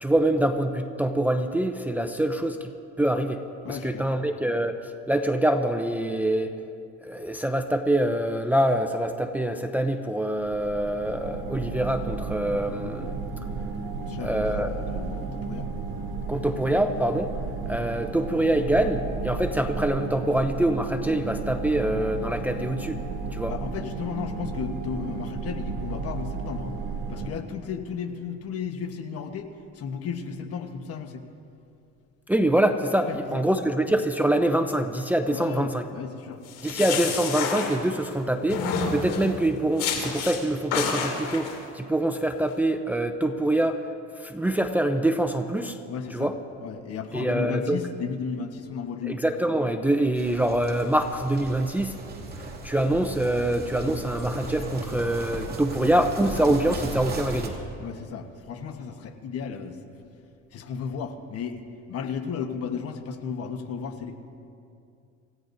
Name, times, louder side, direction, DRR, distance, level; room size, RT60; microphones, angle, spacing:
voice 1, 0.0-2.7 3.0-3.4 3.7-6.6 7.0-13.2 14.2-14.7 16.3-17.3 17.7-23.0 23.3-23.5 32.3-35.8 36.6-43.9 44.2-45.8 46.1-46.3 47.1-47.8 49.1-51.9 52.6-57.5, right 1 dB, 5° right, 6 dB, 0.6 m, -25 dB
voice 2, 3.6-4.2 14.0-15.7 23.5-26.7 27.1-29.5 29.7-31.2 33.0-33.4 35.3-36.4 45.9-46.3 46.6-49.2 57.8-59.9 60.5-61.6 61.9-64.2, left 6 dB, 50° left, 7 dB, 1.3 m, -34 dB
sound 1, 10.4-27.3, right 4 dB, 80° right, 1.7 m, -33 dB
sound 2, 36.5-38.1 38.5-39.3 39.8-40.4 40.7-41.5, left 5 dB, 85° left, 3.2 m, -29 dB
sound 3, 50.1-57.5, right 2 dB, 30° right, 2.5 m, -35 dB
27.5 x 15.5 x 2.7 m, 2.5 s
cardioid pair, 115°, 30 cm